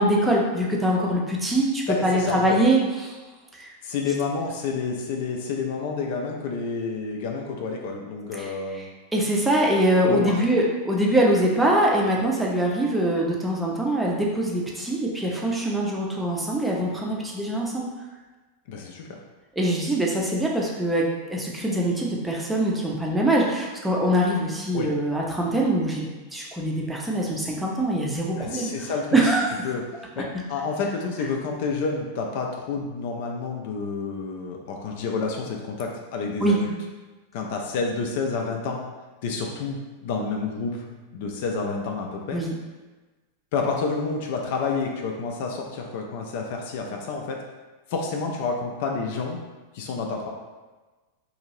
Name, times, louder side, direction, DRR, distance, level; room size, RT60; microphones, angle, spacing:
voice 1, 0.0-3.1 3.6-3.7 8.3-17.9 19.6-28.7 29.1-29.5 30.2-30.3 36.4-36.6 42.3-42.5, right 1 dB, 5° right, -3 dB, 0.6 m, -23 dB
voice 2, 1.9-2.6 3.8-8.9 10.1-10.4 18.7-19.2 24.7-24.9 28.3-29.2 29.6-29.8 30.2-36.8 37.3-38.8 39.2-42.4 43.5-47.4 47.9-49.4 49.7-50.3, left 4 dB, 50° left, 1 dB, 0.4 m, -29 dB
2.7 x 2.6 x 3.0 m, 1.2 s
figure-of-eight pair, 90°, 0 cm